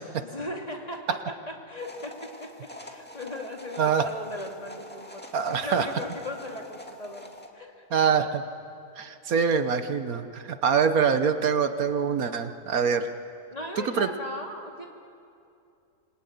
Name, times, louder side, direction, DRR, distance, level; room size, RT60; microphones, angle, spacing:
voice 1, 0.2-8.1 13.5-14.9, left 1 dB, 25° left, 0 dB, 2.7 m, -38 dB
sound 1, 1.8-7.5, left 1 dB, 5° left, 2.1 m, -45 dB
voice 2, 3.8-4.1 5.3-5.9 7.9-8.4 9.0-13.1 13.8-14.1, right 6 dB, 70° right, 9 dB, 1.5 m, -25 dB
26.5 x 22.0 x 9.4 m, 2.5 s
omnidirectional pair, 1.6 m